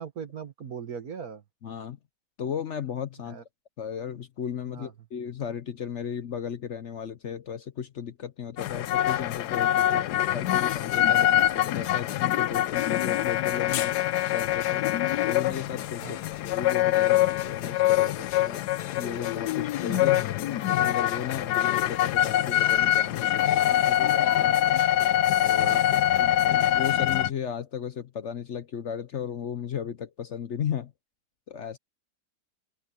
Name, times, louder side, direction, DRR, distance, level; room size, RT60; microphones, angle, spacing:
voice 1, 0.0-1.4 3.2-3.4 4.7-4.9 9.8-10.0 16.0-16.2 19.9-20.2 25.6-25.8, right 7 dB, 65° right, 2.1 m, -39 dB
voice 2, 1.6-2.0 2.4-3.4 3.8-9.9 10.3-14.8 15.3-18.6 19.0-24.6 25.4-25.8 26.2-30.9 31.5-31.8, left 8 dB, 55° left, 1.0 m, -35 dB
sound 1, 8.6-27.3, left 12 dB, 85° left, 1.2 m, -24 dB
open air
omnidirectional pair, 1.7 m